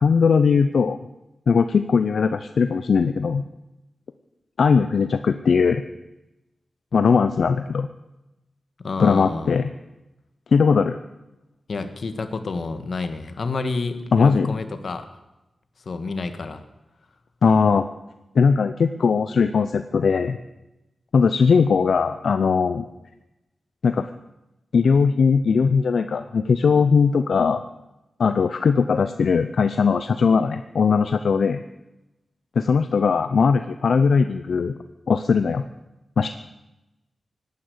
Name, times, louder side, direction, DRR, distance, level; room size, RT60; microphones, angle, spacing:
voice 1, 0.0-1.0 1.5-3.4 4.6-5.8 6.9-7.9 9.0-9.7 10.5-11.0 14.1-14.6 17.4-17.9 18.4-20.4 21.1-22.8 23.8-24.1 24.7-27.6 28.2-31.6 32.6-34.8 35.1-35.6 36.2-36.3, left 5 dB, 80° left, 9 dB, 0.7 m, -19 dB
voice 2, 8.8-9.6 11.7-15.1 15.8-16.6, left 3 dB, 60° left, 8 dB, 1.6 m, -29 dB
18.0 x 10.0 x 8.1 m, 0.97 s
wide cardioid pair, 110°, 0 cm